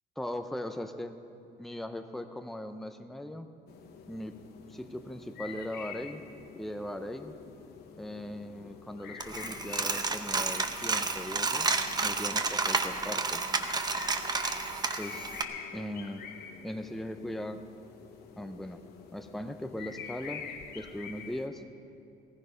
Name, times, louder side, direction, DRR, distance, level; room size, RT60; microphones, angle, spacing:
voice 1, 0.2-1.2 1.6-3.5 4.1-4.4 4.7-6.3 6.5-7.4 8.0-11.7 12.0-13.4 15.0-15.3 15.7-16.3 16.6-17.6 18.4-18.8 19.1-20.5 20.7-21.6, left 1 dB, ahead, 7 dB, 0.7 m, -39 dB
sound 1, 3.7-21.5, left 7 dB, 70° left, 1.3 m, -47 dB
Coin (dropping), 9.2-15.4, right 4 dB, 25° right, 0.9 m, -31 dB
17.5 x 15.5 x 5.2 m, 2.7 s
cardioid pair, 110°, 17 cm